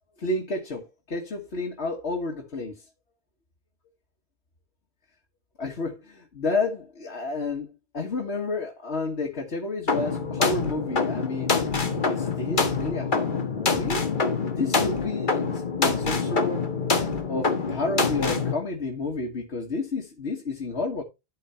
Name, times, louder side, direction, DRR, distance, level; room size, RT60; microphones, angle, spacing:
voice 1, 0.2-2.8 5.6-11.5 12.0-14.1 14.5-16.6 17.3-21.0, left 3 dB, 85° left, 1.8 m, -30 dB
sound 1, 9.9-18.5, left 4 dB, 50° left, 1.5 m, -26 dB
12.5 x 4.6 x 4.3 m
omnidirectional pair, 1.1 m